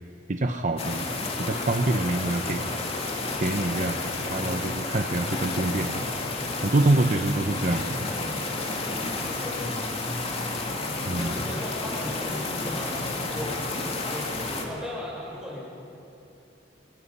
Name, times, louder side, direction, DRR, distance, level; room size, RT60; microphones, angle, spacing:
voice 1, 0.3-1.1 1.4-2.6 3.4-6.1 6.6-8.1 11.1-11.5, right 2 dB, 45° right, 5 dB, 0.8 m, -26 dB
sound 1, 0.8-14.6, left 2 dB, 35° left, 2.5 m, -31 dB
voice 2, 9.1-10.0 11.1-12.9 13.3-13.6 14.1-15.7, left 1 dB, 5° right, -5 dB, 6.9 m, -37 dB
27.0 x 21.0 x 5.6 m, 2.7 s
head